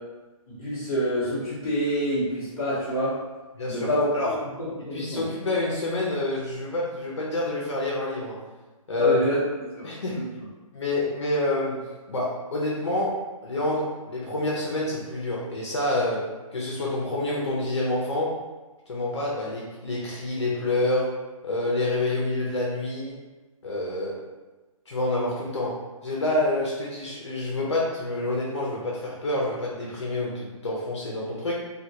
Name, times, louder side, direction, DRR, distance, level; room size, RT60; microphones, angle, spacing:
voice 1, 0.5-3.2 3.7-4.1 4.6-5.2 9.0-9.4 9.7-9.9 10.1-10.3, equal, 5° left, -16 dB, 1.1 m, -27 dB
voice 2, 3.6-3.9 4.1-4.4 4.9-8.4 8.9-9.2 9.8-10.2 10.7-18.4 18.9-21.1 21.4-23.2 23.6-24.2 24.9-31.5, left 2 dB, 50° left, -4 dB, 0.6 m, -27 dB
3.1 x 2.2 x 2.7 m, 1.2 s
hypercardioid pair, 175°, 19 cm